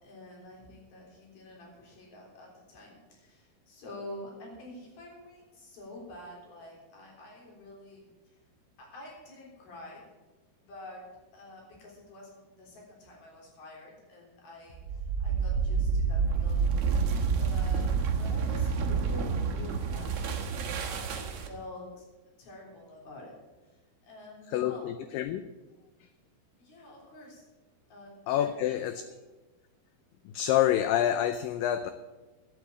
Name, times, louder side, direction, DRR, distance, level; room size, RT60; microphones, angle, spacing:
voice 1, 0.0-8.4 8.8-10.0 10.6-11.0 11.3-17.0 17.4-20.2 20.4-22.1 22.4-23.3 23.7-24.9 26.6-27.4 27.9-29.2, left 2 dB, 65° left, -2 dB, 5.4 m, -48 dB
sound 1, 14.8-21.6, right 5 dB, 75° right, 1.3 m, -28 dB
voice 2, 24.5-25.5 28.3-29.0 30.3-31.9, left 11 dB, 85° left, 11 dB, 2.0 m, -27 dB
11.0 x 8.4 x 8.3 m, 1.2 s
omnidirectional pair, 4.6 m